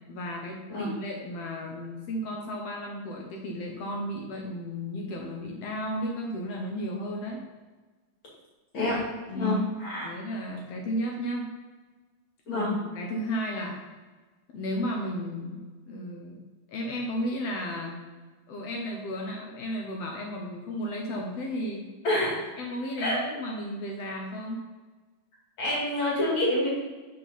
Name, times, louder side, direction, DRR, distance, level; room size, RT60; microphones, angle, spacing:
voice 1, 0.1-7.4 9.3-9.6 10.0-11.5 12.5-13.8 14.5-15.6 15.9-16.4 16.7-18.0 18.5-21.8 22.6-24.7, equal, 70° left, 0 dB, 1.7 m, -34 dB
voice 2, 9.3-10.1 12.5-12.8 22.0-22.4 23.0-23.2 25.6-26.7, left 1 dB, 45° left, -5 dB, 3.0 m, -27 dB
6.4 x 5.8 x 4.0 m, 1.3 s
omnidirectional pair, 3.5 m